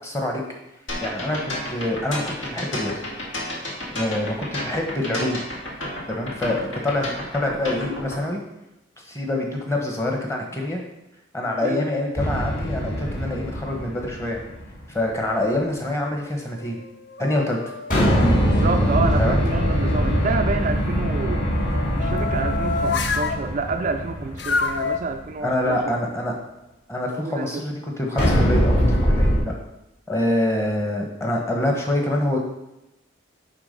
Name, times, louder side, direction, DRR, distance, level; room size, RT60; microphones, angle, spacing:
voice 1, 0.0-0.4 1.0-2.9 3.9-5.4 6.1-7.0 7.3-8.4 9.1-10.8 11.3-14.4 14.9-16.8 17.2-17.6 19.2-19.4 25.4-26.3 26.9-29.5 30.1-32.4, left 1 dB, 15° left, 1 dB, 1.2 m, -25 dB
sound 1, 0.9-8.2, left 1 dB, 75° left, 2.0 m, -31 dB
sound 2, 12.2-14.7 17.9-25.1 28.2-29.4, equal, 40° left, 2.2 m, -22 dB
sound 3, 15.1-15.9 16.4-20.4 21.2-23.4 24.4-25.0, left 4 dB, 60° left, 0.5 m, -30 dB
voice 2, 18.4-21.4 21.9-26.0 27.2-27.6, right 4 dB, 40° right, 6 dB, 0.3 m, -28 dB
9.5 x 3.5 x 5.3 m, 0.94 s
head